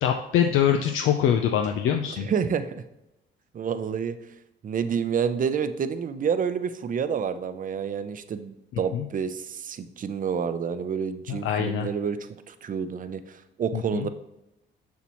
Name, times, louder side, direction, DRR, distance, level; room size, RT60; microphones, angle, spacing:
voice 1, 0.0-2.3 8.9-9.0 11.3-11.9 13.7-14.1, left 9 dB, 85° left, 5 dB, 0.5 m, -24 dB
voice 2, 2.1-2.8 3.5-4.2 4.6-14.1, right 7 dB, 45° right, 11 dB, 0.6 m, -29 dB
7.0 x 5.9 x 3.0 m, 0.90 s
cardioid pair, 90°, 20 cm